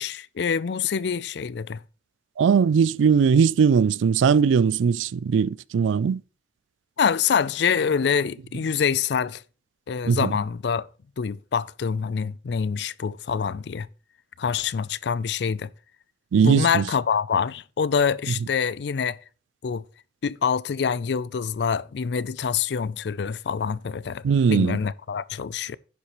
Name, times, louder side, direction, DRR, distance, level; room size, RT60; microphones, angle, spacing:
voice 1, 0.0-1.8 7.0-9.4 9.9-10.9 11.2-13.9 14.4-15.7 16.4-19.2 19.6-19.8 20.2-25.8, left 6 dB, 65° left, 0.4 m, -25 dB
voice 2, 2.4-6.2 10.1-10.3 16.3-16.8 24.2-24.8, right 6 dB, 85° right, 0.3 m, -19 dB
10.5 x 8.4 x 3.0 m
head